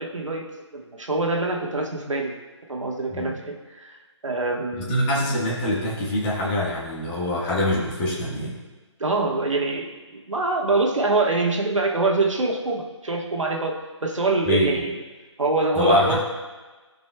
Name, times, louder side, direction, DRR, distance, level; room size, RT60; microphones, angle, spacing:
voice 1, 0.0-2.3 2.7-5.3 9.0-15.0 15.4-16.2, right 3 dB, 85° right, 0 dB, 1.3 m, -25 dB
voice 2, 4.7-8.6 14.4-14.8 15.8-16.2, left 1 dB, 20° left, -4 dB, 1.4 m, -24 dB
15.5 x 5.2 x 2.2 m, 1.3 s
figure-of-eight pair, 155°, 16 cm